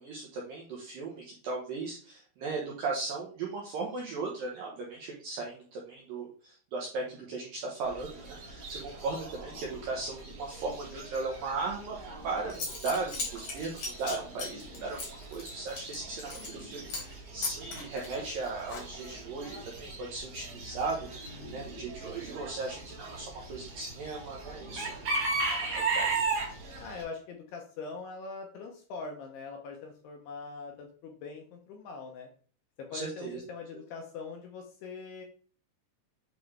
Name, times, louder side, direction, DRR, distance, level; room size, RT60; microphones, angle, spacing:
voice 1, 0.0-12.0 12.2-15.0 15.3-24.9 25.5-26.2 32.9-33.4, right 3 dB, 75° right, -2 dB, 2.0 m, -37 dB
Chicken rooster / Bird, 7.8-27.0, right 3 dB, 50° right, 2.2 m, -38 dB
Zipper (clothing) / Coin (dropping), 12.1-12.2 12.5-16.6 16.9-17.1 17.4-19.2, left 4 dB, 55° left, 1.9 m, -38 dB
voice 2, 26.8-32.3 32.8-35.3, left 4 dB, 75° left, 2 dB, 2.5 m, -42 dB
8.4 x 3.9 x 3.3 m, 0.42 s
omnidirectional pair, 5.4 m